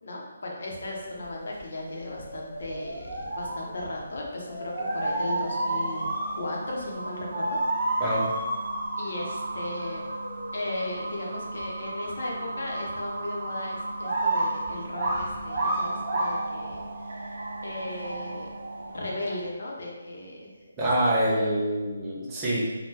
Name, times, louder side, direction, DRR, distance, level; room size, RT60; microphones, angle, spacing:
voice 1, 0.0-6.1 6.4-7.6 9.0-10.1 10.5-18.5 18.9-20.5, left 1 dB, 60° left, -2 dB, 0.7 m, -36 dB
sound 1, 0.8-0.9 1.2-6.5 7.3-9.3 9.6-10.8 11.2-11.3 11.6-11.7 11.9-12.6 13.1-13.2 14.0-16.7, right 2 dB, 35° right, 1.0 m, -31 dB
sound 2, 4.8-19.5, right 2 dB, 80° right, 0.3 m, -37 dB
voice 2, 8.0-8.3 20.8-22.7, right 1 dB, 10° right, -7 dB, 0.5 m, -25 dB
3.6 x 2.2 x 2.8 m, 1.2 s
hypercardioid pair, 175°, 0 cm